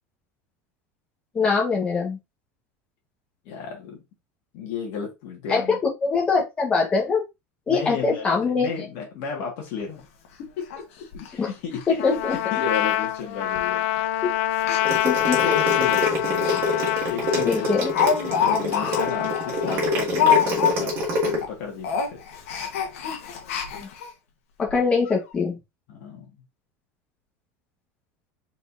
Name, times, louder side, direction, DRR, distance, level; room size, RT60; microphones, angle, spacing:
voice 1, 1.3-2.2 5.5-5.6 6.0-7.2 7.7-8.7 11.4-11.5 11.9-12.3 14.2-14.3 15.0-15.4 17.4-17.9 23.8-23.9 24.6-25.6, left 4 dB, 15° left, 0 dB, 1.4 m, -23 dB
voice 2, 3.5-4.0 4.5-5.8 7.7-10.0 10.4-10.9 11.1-14.2 15.3-16.6 17.1-17.7 18.3-22.2 25.9-26.4, left 5 dB, 45° left, 1 dB, 1.9 m, -34 dB
Speech, 9.8-9.9 10.2-10.3 10.7-10.8 11.1-11.3 11.7-11.9 12.1-12.4 12.7-12.8 13.6-13.8 14.5-16.6 17.0-17.1 17.5-21.0 21.3-21.5 21.8-24.1 24.7-24.8 25.1-25.2, left 8 dB, 80° left, 1.3 m, -26 dB
Trumpet, 12.0-20.1, left 13 dB, 60° left, 0.3 m, -26 dB
sound 1, 14.8-21.4, left 1 dB, 30° right, 1.8 m, -26 dB
4.3 x 4.1 x 2.7 m, 0.22 s
supercardioid pair, 180°, 7 cm